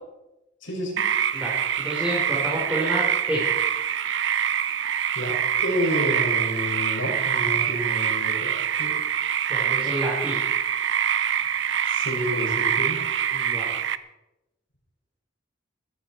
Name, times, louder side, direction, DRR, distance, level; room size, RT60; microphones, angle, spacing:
voice 1, 0.6-1.0 5.1-9.0 11.8-13.0, equal, 80° left, -2 dB, 6.5 m, -30 dB
sound 1, 1.0-14.0, right 9 dB, 70° right, 0.6 m, -25 dB
voice 2, 1.3-3.4 9.5-10.4 13.3-13.8, equal, 10° right, -5 dB, 3.9 m, -29 dB
16.0 x 14.5 x 4.5 m, 0.97 s
head